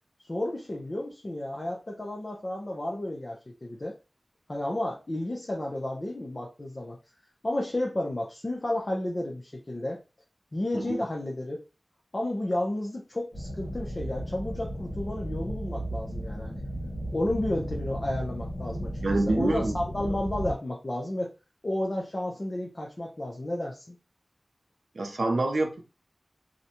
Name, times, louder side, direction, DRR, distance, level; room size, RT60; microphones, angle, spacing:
voice 1, 0.3-3.9 4.5-7.0 7.4-10.0 10.5-11.6 12.1-16.6 17.1-21.3 21.6-24.0, left 1 dB, 40° left, 0.5 m, -32 dB
sound 1, 13.3-20.5, equal, 65° left, 0.9 m, -35 dB
voice 2, 19.0-19.7 24.9-25.8, right 2 dB, 75° right, 0.5 m, -26 dB
2.5 x 2.1 x 2.8 m
wide cardioid pair, 75°, 0 cm